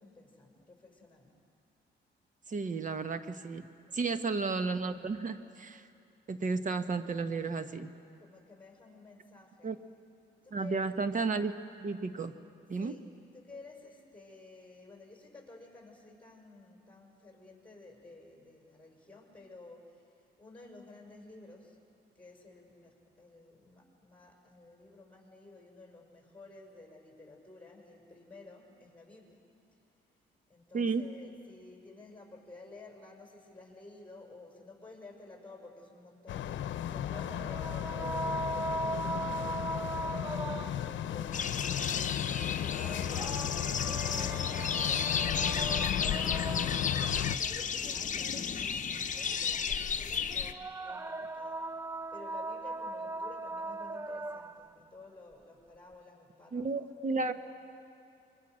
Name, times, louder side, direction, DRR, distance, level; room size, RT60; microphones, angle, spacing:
voice 1, 0.0-1.4 3.9-4.3 8.2-9.7 10.4-10.9 12.7-13.0 13.3-21.8 22.1-29.4 29.7-29.8 30.5-51.8 52.1-57.3, left 3 dB, 5° left, 0 dB, 6.6 m, -53 dB
voice 2, 2.5-3.7 3.9-5.9 6.3-7.9 9.6-9.8 10.5-11.5 11.8-12.3 12.7-13.0 30.7-31.1 56.5-57.3, right 4 dB, 40° right, 9 dB, 1.3 m, -33 dB
sound 1, 36.3-47.4, left 10 dB, 70° left, 0.8 m, -35 dB
sound 2, 37.1-41.1 42.6-47.1 50.3-54.7, right 2 dB, 15° right, 0.5 m, -39 dB
sound 3, 41.3-50.5, left 6 dB, 40° left, 1.0 m, -33 dB
27.5 x 23.5 x 6.4 m, 2.5 s
cardioid pair, 90°, 20 cm